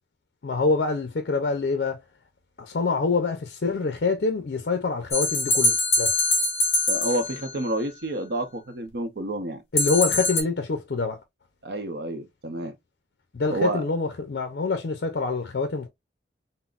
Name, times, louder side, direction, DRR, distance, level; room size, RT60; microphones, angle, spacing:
voice 1, 0.4-2.0 2.6-6.1 9.7-11.2 13.3-15.9, left 4 dB, 60° left, 0.5 m, -26 dB
sound 1, 5.1-7.6 9.8-10.4, left 2 dB, 35° left, 1.0 m, -23 dB
voice 2, 6.9-9.6 11.6-12.7 13.5-13.8, right 1 dB, 65° right, 0.6 m, -29 dB
3.9 x 2.0 x 2.4 m
head